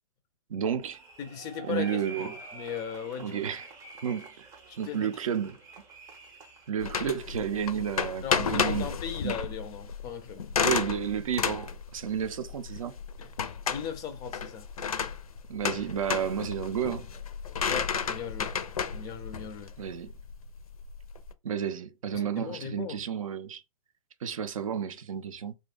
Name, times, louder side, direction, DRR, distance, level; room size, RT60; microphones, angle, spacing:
voice 1, 0.5-1.0 1.7-2.3 3.2-3.7 4.0-4.5 4.8-5.6 6.7-8.9 9.2-9.4 10.6-13.0 15.5-17.1 19.8-20.1 21.4-23.6 24.2-25.5, right 8 dB, 65° right, 0.5 m, -31 dB
sound 1, 0.8-6.7, right 3 dB, 15° right, 0.6 m, -48 dB
voice 2, 1.2-3.4 4.7-5.1 8.2-10.4 13.2-13.3 13.7-14.7 17.7-18.5 18.9-19.7 22.1-23.0, left 7 dB, 20° left, 0.4 m, -37 dB
sound 2, 6.8-21.3, left 7 dB, 75° left, 0.5 m, -32 dB
2.6 x 2.2 x 3.7 m
figure-of-eight pair, 120°, 19 cm